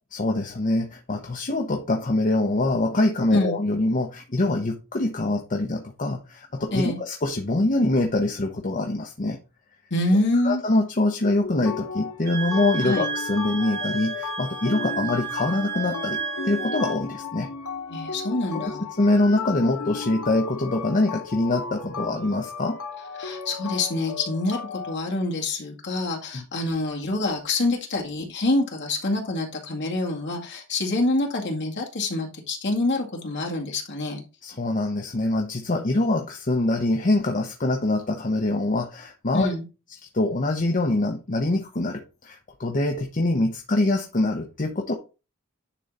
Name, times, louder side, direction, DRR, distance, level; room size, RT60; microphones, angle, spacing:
voice 1, 0.1-9.4 10.4-16.2 16.4-17.5 18.5-18.7 19.0-22.8 26.3-26.4 34.4-39.5 40.1-44.9, left 2 dB, 35° left, 3 dB, 0.9 m, -24 dB
voice 2, 9.9-10.6 12.8-13.1 17.9-18.8 23.2-34.2 39.3-39.6, left 2 dB, 55° left, 0 dB, 2.1 m, -26 dB
sound 1, 11.2-24.9, left 5 dB, 80° left, 1.3 m, -35 dB
Wind instrument woodwind instrument, 12.2-17.0, right 7 dB, 45° right, 2.2 m, -32 dB
10.0 x 3.8 x 4.1 m, 0.31 s
head